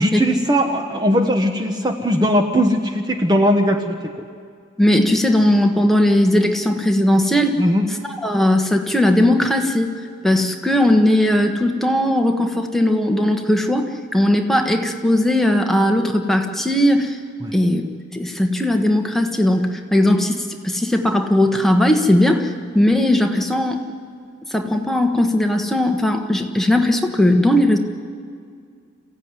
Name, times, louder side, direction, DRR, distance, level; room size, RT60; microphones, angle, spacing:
voice 1, 0.0-4.1 7.6-7.8 17.4-17.5, equal, 20° right, 5 dB, 1.1 m, -19 dB
voice 2, 4.8-7.6 8.0-9.9 10.2-17.2 17.5-17.8 18.1-23.8 24.5-27.8, left 1 dB, ahead, 3 dB, 1.4 m, -18 dB
27.0 x 15.5 x 9.7 m, 2.2 s
head